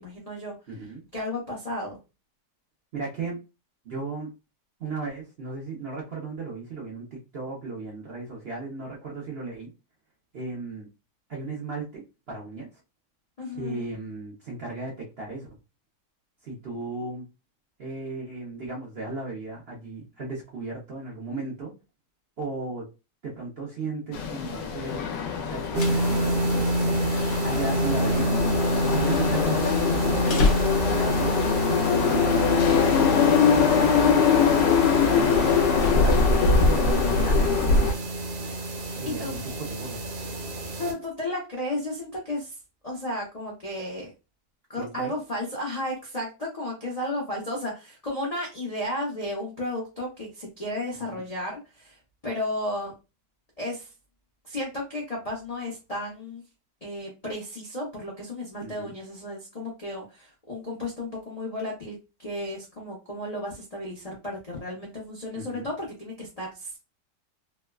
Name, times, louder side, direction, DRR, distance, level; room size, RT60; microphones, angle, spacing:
voice 1, 0.0-0.6 1.1-2.0 13.4-13.8 35.0-35.5 38.8-39.4 40.8-42.6 42.8-44.1 44.7-52.0 52.2-52.9 53.6-53.9 54.4-56.4 56.8-62.0 62.2-66.8, left 1 dB, 40° left, -3 dB, 0.5 m, -33 dB
voice 2, 0.7-1.0 2.9-3.4 3.8-4.3 4.8-9.7 10.3-10.9 11.3-12.7 13.5-15.5 16.4-17.2 17.8-21.7 22.4-22.9 23.2-25.0 25.5-27.1 27.4-28.3 28.9-30.5 31.0-31.4 31.7-34.4 35.1-35.5 35.9-37.5 39.0-39.4 39.8-40.0 44.8-45.1 50.9-51.2 58.6-58.9 65.3-65.7, right 3 dB, 50° right, -3 dB, 0.8 m, -35 dB
sound 1, 24.1-37.9, left 5 dB, 85° left, 1.2 m, -22 dB
sound 2, 25.5-31.2, left 3 dB, 65° left, 1.0 m, -32 dB
sound 3, 25.7-40.9, right 1 dB, 75° right, 1.4 m, -28 dB
3.3 x 2.2 x 2.2 m, 0.28 s
omnidirectional pair, 1.8 m